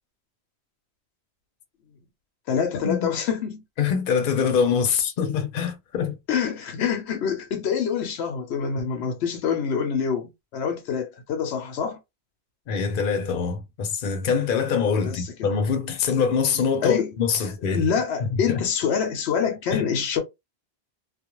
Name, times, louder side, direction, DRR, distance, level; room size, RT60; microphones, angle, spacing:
voice 1, 2.5-3.6 6.3-12.0 15.0-15.5 16.8-17.1 17.4-20.2, left 7 dB, 85° left, 0.9 m, -26 dB
voice 2, 3.8-6.2 12.7-17.8 18.2-18.6 19.7-19.8, left 6 dB, 60° left, 0.7 m, -24 dB
2.4 x 2.1 x 2.9 m
omnidirectional pair, 1.1 m